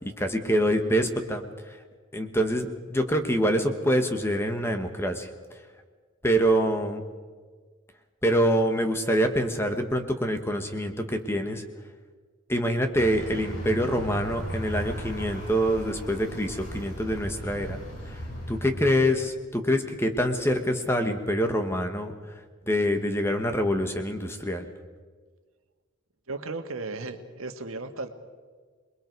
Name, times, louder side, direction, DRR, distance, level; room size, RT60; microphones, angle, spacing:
voice 1, 0.0-1.8 2.1-5.3 6.2-7.0 8.2-11.6 12.5-17.8 18.1-18.2 18.5-22.1 22.7-24.7, equal, 10° left, 6 dB, 1.4 m, -25 dB
Vehicle, 13.0-19.3, equal, 90° left, 6.9 m, -37 dB
voice 2, 26.3-28.1, right 3 dB, 80° right, 6 dB, 1.7 m, -35 dB
27.5 x 21.5 x 4.7 m, 1.5 s
head